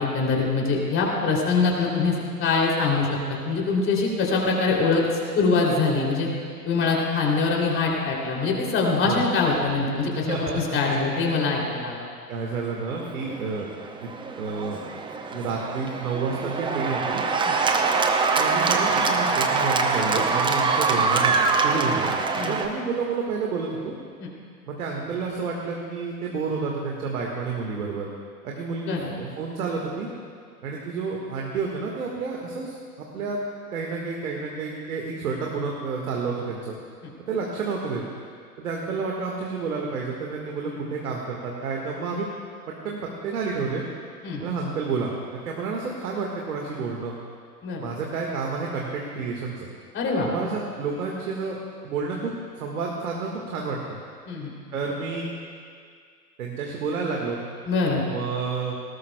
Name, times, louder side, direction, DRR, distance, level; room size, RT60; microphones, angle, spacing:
voice 1, 0.0-2.1 2.4-3.1 3.4-5.0 5.3-6.3 6.6-12.0 17.4-17.6 22.3-22.6 24.2-24.3 28.9-29.1 37.0-37.1 44.2-44.4 47.6-47.9 49.9-50.3 54.3-54.5 57.7-58.0, left 4 dB, 25° left, -1 dB, 3.0 m, -23 dB
voice 2, 10.3-11.0 12.3-13.7 14.0-14.1 14.4-14.8 15.3-17.2 18.4-22.2 22.5-23.9 24.7-28.1 28.4-30.1 30.6-33.4 33.7-36.8 37.3-38.0 38.6-42.3 42.7-43.8 44.4-45.1 45.4-47.1 47.8-49.7 50.3-51.6 51.8-54.0 54.7-55.3 56.4-57.4 58.0-58.7, right 4 dB, 65° right, -1 dB, 1.8 m, -30 dB
Cheering / Applause, 13.0-22.7, right 4 dB, 10° right, 0.6 m, -24 dB
19.0 x 18.0 x 2.3 m, 2.1 s
figure-of-eight pair, 100°, 47 cm